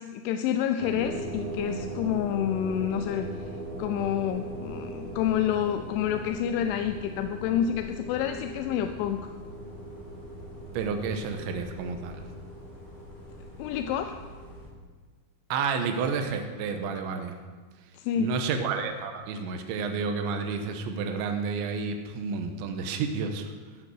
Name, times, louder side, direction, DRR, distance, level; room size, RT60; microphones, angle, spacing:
voice 1, 0.0-3.4 3.8-9.3 13.6-14.2 18.0-18.3, left 9 dB, 90° left, 7 dB, 3.0 m, -28 dB
sound 1, 0.8-14.7, right 1 dB, 35° left, 4.4 m, -39 dB
voice 2, 10.7-12.3 15.5-17.4 17.8-23.5, right 5 dB, 80° right, 5 dB, 3.2 m, -30 dB
14.0 x 7.8 x 6.3 m, 1.4 s
omnidirectional pair, 5.4 m